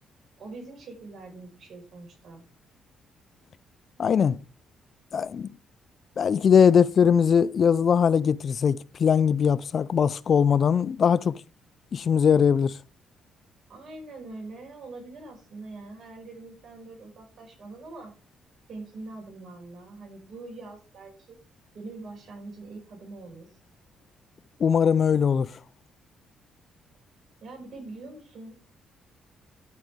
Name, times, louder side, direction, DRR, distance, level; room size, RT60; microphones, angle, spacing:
voice 1, 0.4-2.4 13.7-18.1 18.7-21.4 21.7-23.5 27.4-28.5, right 3 dB, 55° right, 5.0 m, -43 dB
voice 2, 4.0-4.4 5.1-5.5 6.2-11.4 11.9-12.8 24.6-25.5, left 7 dB, 50° left, 0.3 m, -21 dB
12.0 x 5.4 x 3.5 m
cardioid pair, 90°, 0 cm